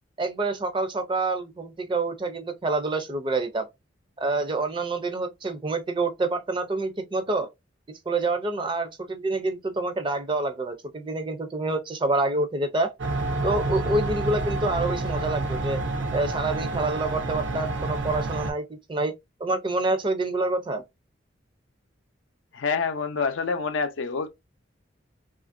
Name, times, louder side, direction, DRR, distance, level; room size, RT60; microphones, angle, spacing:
voice 1, 0.2-3.7 4.2-7.5 8.1-12.9 13.4-15.8 16.1-19.1 19.4-20.8, right 2 dB, 25° right, 0.4 m, -27 dB
sound 1, 13.0-18.5, right 2 dB, 75° right, 0.6 m, -28 dB
voice 2, 22.5-24.3, left 5 dB, 90° left, 0.5 m, -27 dB
2.8 x 2.5 x 2.4 m
head